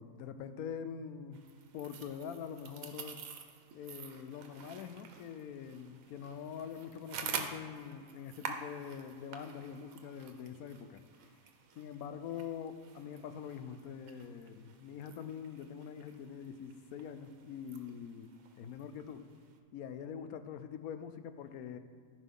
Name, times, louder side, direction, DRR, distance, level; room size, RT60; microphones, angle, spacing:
voice 1, 0.0-1.5 1.7-3.2 3.7-11.0 11.7-19.2 19.7-21.8, left 7 dB, 90° left, 10 dB, 1.1 m, -44 dB
sound 1, 1.3-19.6, right 6 dB, 75° right, 1.2 m, -48 dB
14.5 x 5.2 x 3.7 m, 2.1 s
omnidirectional pair, 1.5 m